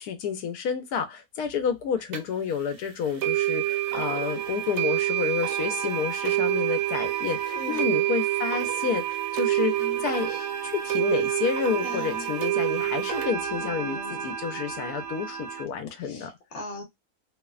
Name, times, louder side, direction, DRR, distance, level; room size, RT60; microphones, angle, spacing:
voice 1, 0.0-10.3 10.6-16.3, left 7 dB, 90° left, 1.2 m, -30 dB
sound 1, 2.1-2.2 3.2-15.6, right 13 dB, 70° right, 1.1 m, -28 dB
voice 2, 7.5-7.9 9.6-10.4 11.8-12.3 13.6-14.4 16.0-16.8, left 2 dB, 55° left, 1.2 m, -40 dB
2.9 x 2.1 x 2.3 m
omnidirectional pair, 1.6 m